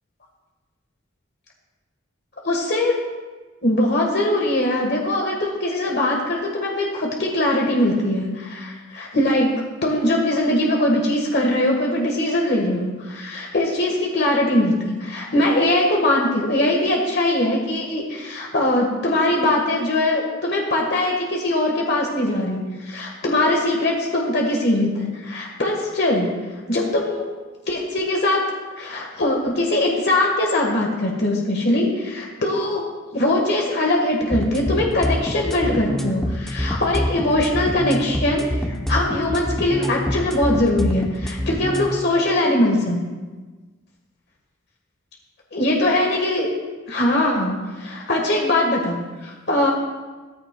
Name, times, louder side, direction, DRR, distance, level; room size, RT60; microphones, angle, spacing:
voice 1, 2.4-2.9 3.6-9.6 9.8-26.3 26.7-27.3 27.7-28.4 28.8-32.8 33.1-43.0 45.5-46.5 46.9-49.7, left 1 dB, 50° left, 0 dB, 1.4 m, -21 dB
sound 1, 34.3-41.9, equal, ahead, 0.7 m, -25 dB
14.5 x 14.0 x 2.2 m, 1.3 s
head